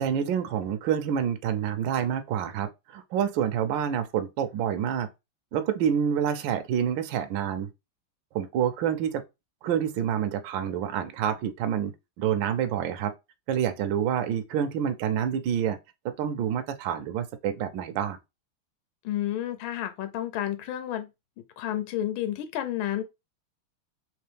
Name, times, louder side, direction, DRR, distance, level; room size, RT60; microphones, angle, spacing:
voice 1, 0.0-5.1 5.5-7.7 8.3-9.2 9.6-13.1 13.5-15.8 16.0-18.2, right 9 dB, 75° right, 1.2 m, -27 dB
voice 2, 19.0-21.1 21.6-23.0, left 12 dB, 75° left, 1.4 m, -30 dB
3.7 x 3.0 x 3.3 m
omnidirectional pair, 2.4 m